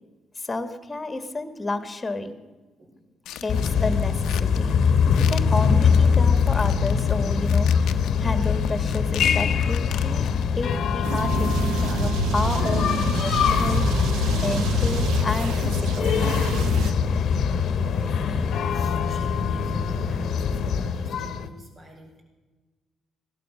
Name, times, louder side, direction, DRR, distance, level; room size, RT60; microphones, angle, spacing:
voice 1, 0.4-2.3 3.4-4.8 5.3-7.7 8.2-10.3 10.5-13.8 14.3-16.4, left 2 dB, 20° left, 9 dB, 1.6 m, -31 dB
sound 1, 3.3-10.5, left 10 dB, 85° left, 0.9 m, -41 dB
sound 2, 3.5-21.5, left 6 dB, 65° left, 1.1 m, -23 dB
sound 3, 11.0-16.9, right 4 dB, 85° right, 1.4 m, -28 dB
voice 2, 17.8-22.2, right 1 dB, 45° right, 1 dB, 5.6 m, -47 dB
17.0 x 12.0 x 6.3 m, 1.3 s
cardioid pair, 90°, 0 cm